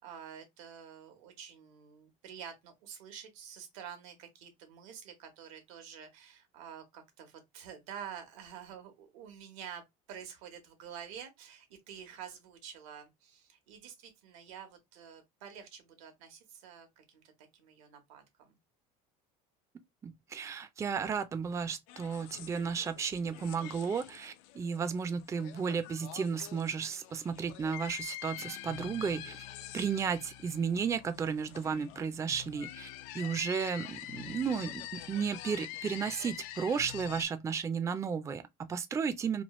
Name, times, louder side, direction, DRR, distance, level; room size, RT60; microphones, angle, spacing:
voice 1, 0.0-18.6, right 8 dB, 85° right, 1.1 m, -48 dB
voice 2, 20.0-29.4 29.7-32.9 33.1-39.4, right 6 dB, 15° right, 0.4 m, -34 dB
sound 1, 21.9-37.3, left 13 dB, 80° left, 0.4 m, -46 dB
3.1 x 2.3 x 2.9 m
supercardioid pair, 110°, 17 cm